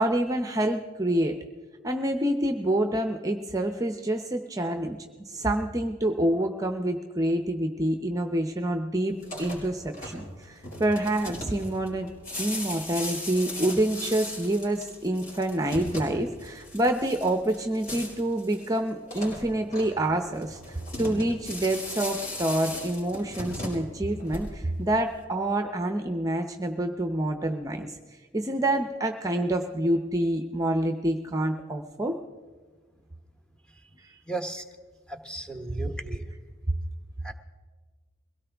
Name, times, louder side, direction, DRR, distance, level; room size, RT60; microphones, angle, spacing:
voice 1, 0.0-1.3 1.8-5.0 5.3-12.1 12.4-20.6 21.0-27.9 28.3-32.2 34.0-34.1, right 1 dB, 20° right, 5 dB, 0.7 m, -27 dB
sound 1, 9.1-24.8, left 1 dB, 50° left, 5.0 m, -38 dB
voice 2, 34.3-34.6 35.1-36.2 37.2-37.3, right 2 dB, 5° left, 5 dB, 1.0 m, -35 dB
22.5 x 17.0 x 3.5 m, 1.4 s
head